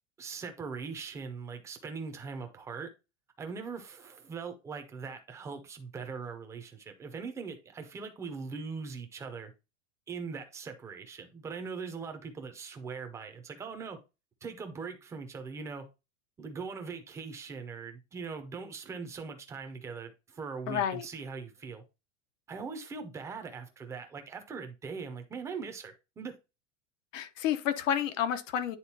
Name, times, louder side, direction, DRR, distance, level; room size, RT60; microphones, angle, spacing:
voice 1, 0.2-2.9 3.4-9.5 10.1-14.0 14.4-15.8 16.4-21.8 22.5-26.4, right 5 dB, 10° right, 0.5 m, -41 dB
voice 2, 20.7-21.0 27.1-28.8, left 9 dB, 85° left, 1.0 m, -30 dB
9.9 x 3.8 x 2.8 m
supercardioid pair, 170°, 37 cm